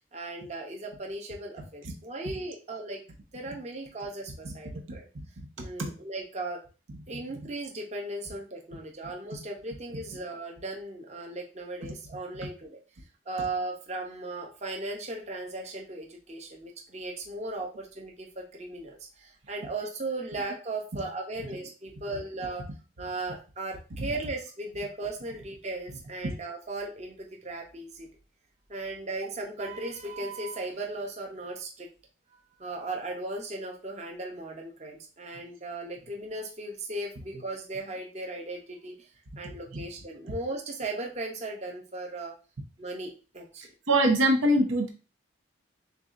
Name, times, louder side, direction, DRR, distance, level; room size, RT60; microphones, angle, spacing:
voice 1, 0.1-3.0 3.3-5.0 5.6-6.6 7.1-12.8 13.3-22.6 23.0-28.1 28.7-31.9 32.6-39.1 39.4-42.3 42.8-43.6, right 2 dB, 35° right, 0 dB, 0.7 m, -37 dB
voice 2, 5.6-5.9 12.4-12.5 24.0-24.1 26.2-26.3 39.7-39.8 43.9-44.9, right 1 dB, 90° right, 2 dB, 0.9 m, -25 dB
6.7 x 2.3 x 2.5 m, 0.34 s
head